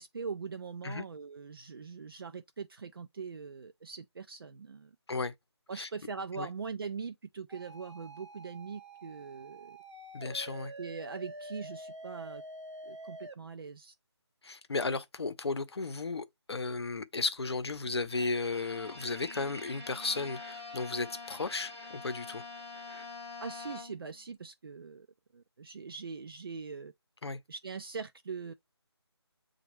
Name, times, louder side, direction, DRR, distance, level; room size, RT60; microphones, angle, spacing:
voice 1, 0.0-4.9 5.7-9.8 10.8-12.4 12.9-13.9 23.4-25.1 25.3-26.9 27.5-28.5, right 5 dB, 55° right, 0.4 m, -42 dB
sound 1, 7.5-13.3, right 1 dB, 80° right, 0.9 m, -47 dB
voice 2, 10.1-10.7 14.4-22.4 27.2-27.4, left 3 dB, 65° left, 0.7 m, -34 dB
Bowed string instrument, 18.1-24.2, left 3 dB, 10° left, 0.6 m, -45 dB
6.8 x 2.3 x 3.0 m
figure-of-eight pair, 160°, 14 cm